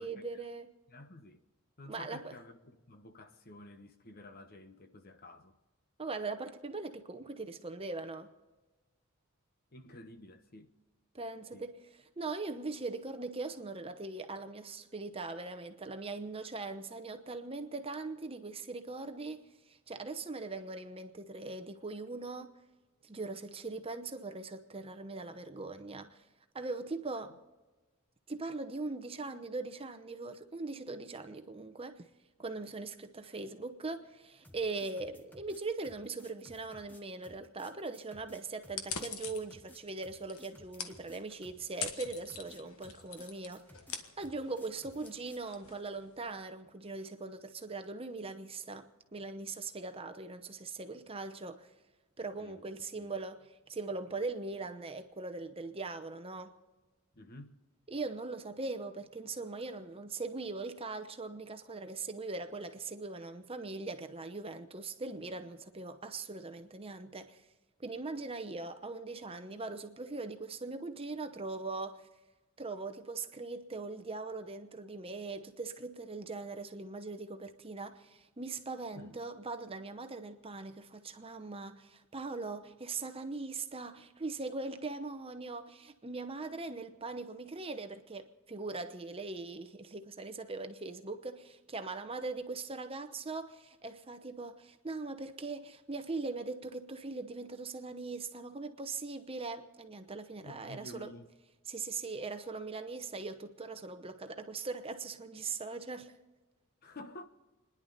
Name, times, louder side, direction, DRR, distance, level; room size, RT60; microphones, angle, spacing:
voice 1, 0.0-0.7 1.9-2.4 6.0-8.3 11.1-11.7 12.2-22.5 23.0-26.2 26.5-27.4 28.3-32.1 32.4-43.7 44.2-51.7 52.2-56.6 57.9-67.5 67.8-72.1 72.6-101.1 101.7-106.2, right 3 dB, 25° right, 0.9 m, -41 dB
voice 2, 0.9-1.4 1.8-5.6 9.7-10.7 11.5-11.7 52.4-52.6 52.9-53.1 57.1-57.6 78.9-79.2 100.4-101.3 106.8-107.2, left 1 dB, 45° left, 1.1 m, -51 dB
sound 1, 34.4-45.5, equal, 10° left, 1.1 m, -57 dB
sound 2, 38.6-46.4, left 6 dB, 75° left, 1.4 m, -45 dB
29.0 x 11.0 x 4.1 m
head